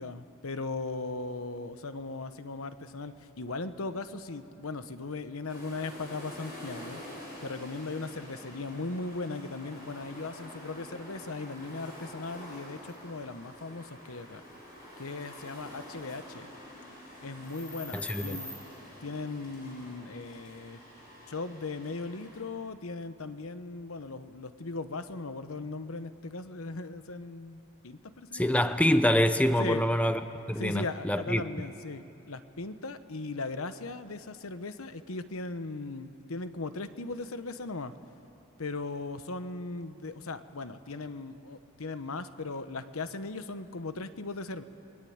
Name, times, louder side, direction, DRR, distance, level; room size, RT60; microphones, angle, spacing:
voice 1, 0.0-7.0 7.4-14.4 15.0-16.5 17.2-18.5 19.0-20.8 21.3-28.6 29.6-29.8 30.6-37.9 38.6-44.6, left 3 dB, 80° left, 11 dB, 1.1 m, -38 dB
sound 1, 5.5-22.4, left 1 dB, 40° left, 7.6 m, -47 dB
voice 2, 17.9-18.4 28.3-30.2 30.5-31.4, equal, 5° left, 9 dB, 0.7 m, -25 dB
29.5 x 21.0 x 8.8 m, 2.8 s
head